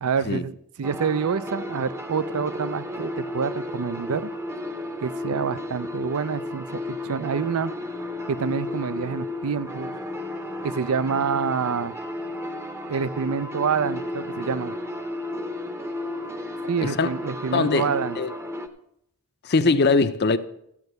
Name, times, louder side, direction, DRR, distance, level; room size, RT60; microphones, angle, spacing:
voice 1, 0.0-4.3 5.0-7.7 8.3-10.0 10.6-11.9 12.9-14.7 16.6-18.2, right 6 dB, 80° right, 0.5 m, -27 dB
sound 1, 0.8-18.7, left 1 dB, 10° right, 0.7 m, -33 dB
voice 2, 17.5-18.3 19.4-20.4, left 3 dB, 45° left, 0.6 m, -21 dB
13.5 x 5.3 x 8.0 m
head